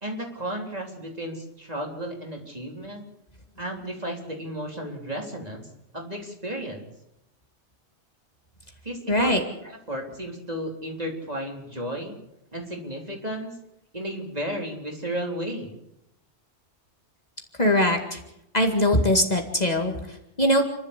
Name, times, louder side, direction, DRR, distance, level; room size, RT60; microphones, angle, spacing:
voice 1, 0.0-3.0 3.6-5.7 5.9-6.9 8.8-12.2 12.5-13.5 13.9-15.7, right 1 dB, 35° right, 1 dB, 3.8 m, -33 dB
voice 2, 9.1-9.4 17.6-18.2 18.5-20.6, left 1 dB, 35° left, 3 dB, 2.2 m, -22 dB
29.0 x 12.0 x 8.2 m, 0.83 s
omnidirectional pair, 1.2 m